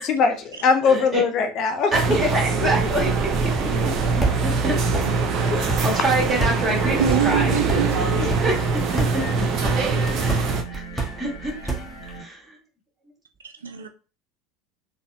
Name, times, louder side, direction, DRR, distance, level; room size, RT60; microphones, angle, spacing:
voice 1, 0.0-1.9 5.5-5.8 8.2-8.3, left 5 dB, 50° left, 0.5 m, -21 dB
voice 2, 0.8-1.2 1.9-3.9 4.4-5.1 5.8-7.8 8.2-9.2 10.2-11.7 12.2-12.4, right 1 dB, 20° right, 1.8 m, -27 dB
sound 1, 1.9-10.6, right 4 dB, 45° right, 0.6 m, -23 dB
sound 2, 2.6-12.2, right 3 dB, ahead, 1.1 m, -31 dB
sound 3, 5.6-12.2, equal, 75° left, 0.9 m, -40 dB
voice 3, 7.0-8.2 13.4-13.9, right 9 dB, 85° right, 0.3 m, -26 dB
3.9 x 2.1 x 2.7 m
figure-of-eight pair, 70°, 0 cm